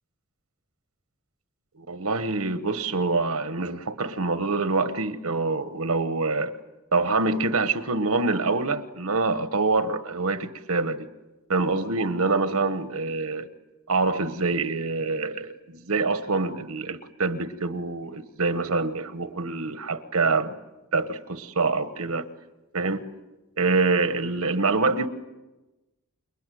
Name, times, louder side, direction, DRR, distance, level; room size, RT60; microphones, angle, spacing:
voice 1, 1.8-6.5 6.9-11.1 11.5-13.5 13.9-20.5 20.9-22.3 22.7-23.1 23.6-25.1, right 3 dB, 85° right, 1.2 m, -25 dB
29.0 x 21.0 x 9.3 m
head